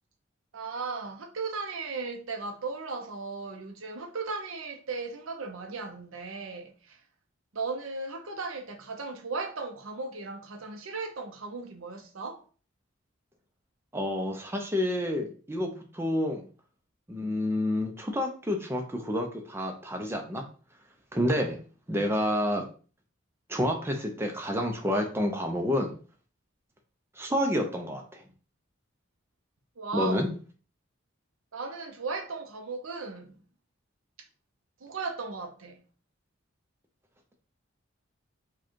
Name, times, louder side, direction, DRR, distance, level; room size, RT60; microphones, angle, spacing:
voice 1, 0.5-7.0 7.5-12.4 29.8-30.2 31.5-33.4 34.8-35.8, right 4 dB, 80° right, 0.8 m, -36 dB
voice 2, 13.9-16.4 17.1-20.4 21.1-21.6 21.9-22.6 23.5-25.9 27.2-28.2 29.9-30.3, left 1 dB, 10° right, 0.6 m, -29 dB
4.8 x 2.4 x 4.5 m
head